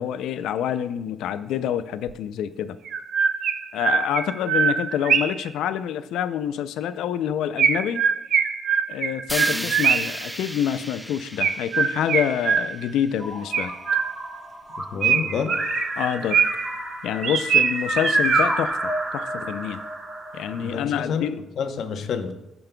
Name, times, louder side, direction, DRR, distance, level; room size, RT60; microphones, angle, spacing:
voice 1, 0.0-2.8 3.7-8.0 8.9-13.7 16.0-16.4 17.0-19.8 20.3-21.4, left 9 dB, 85° left, 13 dB, 0.4 m, -27 dB
Chirp tweet, 2.1-2.2 2.9-5.5 7.6-10.2 11.4-13.0 13.5-14.4 15.0-16.8 17.2-18.7, right 7 dB, 65° right, 0.5 m, -23 dB
sound 1, 9.3-13.4, equal, 5° right, 0.4 m, -34 dB
sound 2, 13.2-20.8, right 1 dB, 40° right, 2.4 m, -29 dB
voice 2, 14.8-15.6 20.6-22.3, left 6 dB, 65° left, 6 dB, 0.9 m, -29 dB
15.5 x 5.3 x 2.2 m, 0.90 s
cardioid pair, 90°, 0 cm